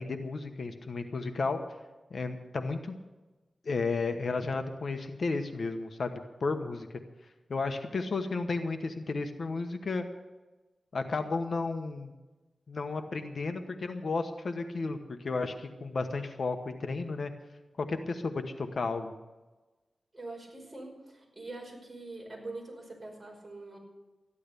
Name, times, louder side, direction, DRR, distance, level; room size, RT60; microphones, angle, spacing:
voice 1, 0.0-1.6 2.1-3.0 3.6-6.1 6.4-6.9 7.5-10.0 10.9-12.1 12.7-17.3 17.8-19.1, left 3 dB, 60° left, 7 dB, 1.1 m, -33 dB
voice 2, 20.1-23.8, right 2 dB, 25° right, -1 dB, 5.4 m, -44 dB
14.0 x 11.0 x 6.8 m, 1.2 s
wide cardioid pair, 105°, 0 cm